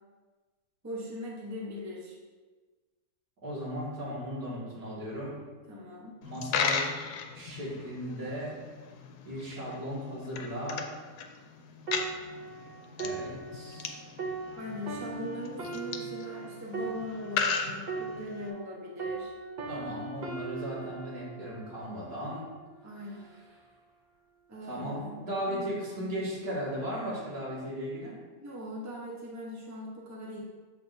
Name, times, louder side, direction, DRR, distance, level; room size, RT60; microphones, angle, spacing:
voice 1, 0.8-2.2 5.7-6.2 14.6-19.3 22.8-23.3 24.5-25.2 25.5-25.7 26.0-26.2 28.4-30.4, left 1 dB, 15° right, -4 dB, 0.9 m, -40 dB
voice 2, 3.4-5.3 6.2-6.9 7.3-8.6 9.2-10.8 13.0-14.0 19.7-22.5 24.6-28.2, equal, 75° right, -7 dB, 2.6 m, -36 dB
Coin (dropping), 6.2-18.5, left 5 dB, 90° left, 1.2 m, -37 dB
sound 1, 11.9-18.7 19.0-22.6 23.2-23.4, right 4 dB, 50° right, 0.5 m, -39 dB
7.4 x 6.0 x 2.7 m, 1.3 s
omnidirectional pair, 1.6 m